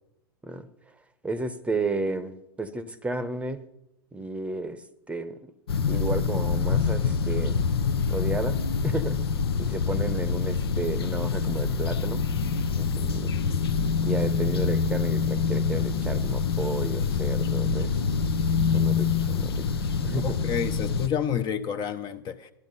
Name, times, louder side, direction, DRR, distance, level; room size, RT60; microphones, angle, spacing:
voice 1, 1.2-3.6 4.1-4.8 5.1-5.4 5.9-7.6 8.1-8.6 8.8-9.2 9.6-12.2 12.8-13.4 14.0-18.0 18.7-20.4, right 2 dB, 10° right, 13 dB, 0.8 m, -32 dB
sound 1, 5.7-21.1, left 5 dB, 80° left, 0.8 m, -26 dB
voice 2, 20.1-22.5, left 8 dB, 35° left, 9 dB, 0.8 m, -29 dB
12.5 x 10.5 x 5.5 m, 0.86 s
hypercardioid pair, 100°, 13 cm